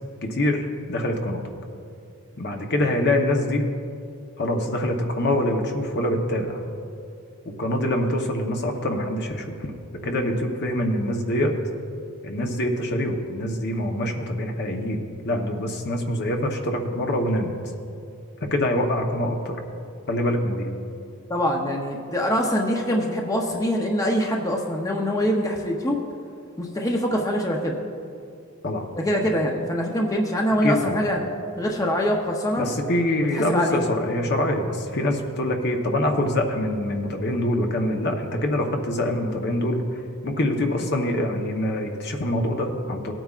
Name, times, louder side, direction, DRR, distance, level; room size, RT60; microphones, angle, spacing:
voice 1, 0.2-1.4 2.4-3.6 4.4-6.6 7.4-11.5 12.2-17.5 18.4-19.6 20.1-20.7 28.6-28.8 30.6-31.0 32.6-43.1, left 1 dB, 50° left, 3 dB, 1.0 m, -25 dB
voice 2, 21.3-26.0 26.6-27.8 29.0-31.2 31.6-32.6 33.3-33.8, equal, 15° left, 0 dB, 0.7 m, -24 dB
18.5 x 9.0 x 2.5 m, 2.5 s
head